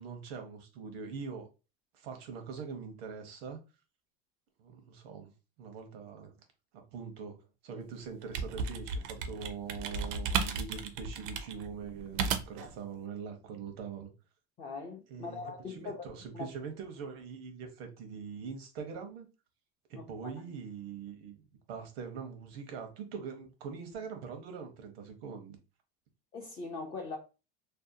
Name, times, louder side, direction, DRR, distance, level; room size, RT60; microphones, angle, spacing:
voice 1, 0.0-1.5 1.9-3.6 4.6-5.3 5.6-6.3 6.7-7.4 7.6-14.1 15.1-19.3 19.9-21.4 21.7-25.6, right 6 dB, 90° right, 0.8 m, -43 dB
sound 1, 8.0-12.7, right 5 dB, 70° right, 0.5 m, -34 dB
voice 2, 14.6-16.5 19.9-20.1 26.3-27.2, left 4 dB, 20° left, 0.3 m, -41 dB
2.6 x 2.1 x 2.6 m
supercardioid pair, 135°, 30 cm